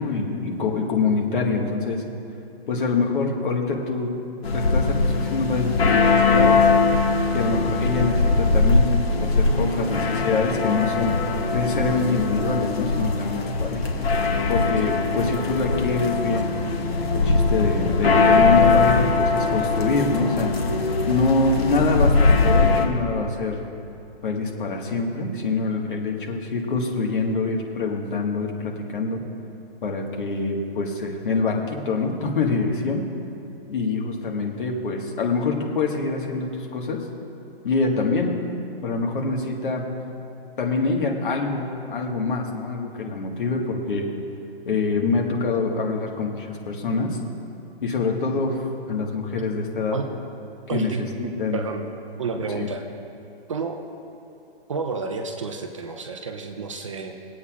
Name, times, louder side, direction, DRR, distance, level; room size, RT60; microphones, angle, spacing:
voice 1, 0.0-2.0 2.7-4.1 4.5-6.7 7.3-11.1 11.5-13.8 14.5-16.5 17.1-20.5 21.0-23.6 24.2-29.2 29.8-33.0 33.7-37.0 37.6-38.3 38.8-39.8 40.6-44.1 44.6-47.1 47.8-50.0 50.7-50.9 51.2-51.6 52.5-52.7, left 3 dB, 55° left, 1 dB, 1.6 m, -25 dB
sound 1, 4.4-22.9, left 4 dB, 75° left, 1.4 m, -21 dB
sound 2, 9.1-22.0, left 1 dB, 90° left, 1.8 m, -32 dB
voice 2, 50.7-51.9 52.2-52.9 53.5-53.9 54.7-57.1, right 4 dB, 30° right, 4 dB, 0.5 m, -30 dB
24.5 x 8.3 x 2.4 m, 2.7 s
hypercardioid pair, 160°, 31 cm